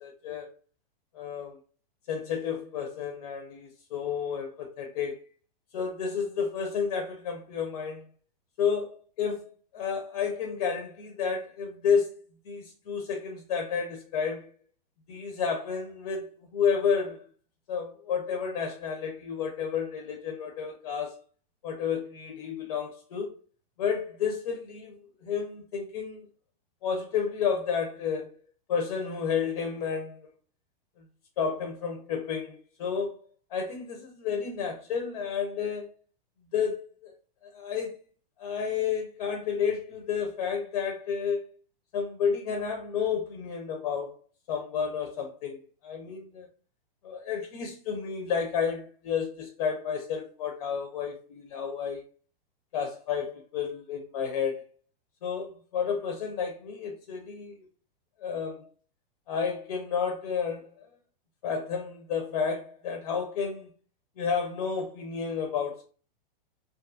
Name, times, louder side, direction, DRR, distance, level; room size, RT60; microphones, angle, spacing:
voice 1, 0.0-0.5 1.1-1.6 2.1-5.2 5.7-8.1 8.6-14.5 15.1-17.2 17.7-21.2 21.6-23.3 23.8-24.9 25.2-26.3 26.8-28.3 28.7-30.2 31.4-33.2 33.5-35.9 36.5-37.1 37.5-38.0 38.4-41.4 41.9-44.1 44.5-45.6 45.8-46.5 47.0-52.0 52.7-54.6 55.2-57.5 58.2-58.6 59.3-60.9 61.4-63.7 64.2-65.8, left 6 dB, 40° left, 0.4 m, -31 dB
2.6 x 2.4 x 2.4 m
supercardioid pair, 165°, 29 cm